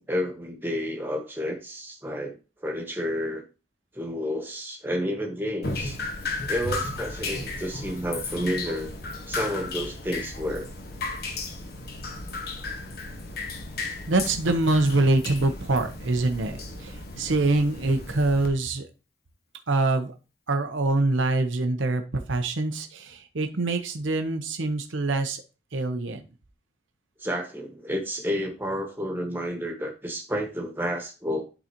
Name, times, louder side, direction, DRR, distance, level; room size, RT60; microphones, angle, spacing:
voice 1, 0.0-3.4 3.9-6.0 6.5-8.9 9.3-10.7 16.7-16.8 27.2-31.4, equal, 10° right, 2 dB, 1.3 m, -30 dB
Drip, 5.6-18.5, left 3 dB, 50° left, 1.2 m, -34 dB
voice 2, 14.1-18.9 19.7-20.1 20.5-22.0 22.3-25.4 25.7-26.2, right 2 dB, 80° right, 6 dB, 0.8 m, -24 dB
11.5 x 4.0 x 2.9 m, 0.31 s
head